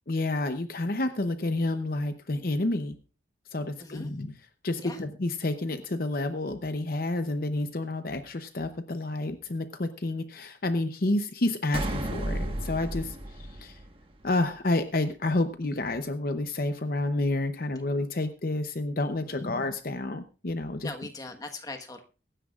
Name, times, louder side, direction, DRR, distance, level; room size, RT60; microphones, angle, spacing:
voice 1, 0.1-3.0 3.5-4.3 4.6-13.8 14.2-20.9, left 2 dB, 50° left, 8 dB, 0.7 m, -29 dB
voice 2, 3.8-4.1 4.8-5.0 19.3-19.6 20.8-22.0, left 2 dB, 20° left, 5 dB, 1.3 m, -40 dB
sound 1, 11.7-14.3, right 1 dB, 30° right, 1.3 m, -33 dB
23.0 x 10.0 x 2.4 m, 0.36 s
head